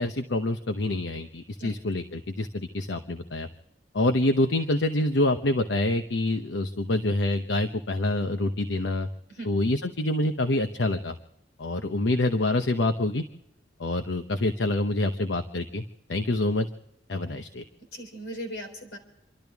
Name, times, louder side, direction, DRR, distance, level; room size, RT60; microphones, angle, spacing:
voice 1, 0.0-3.5 3.9-9.1 9.4-11.2 11.6-13.2 13.8-15.8 16.1-16.7 17.1-17.6, left 2 dB, 90° left, 7 dB, 0.9 m, -26 dB
voice 2, 17.9-19.0, equal, 70° left, 2 dB, 4.0 m, -38 dB
28.5 x 12.5 x 3.5 m, 0.82 s
head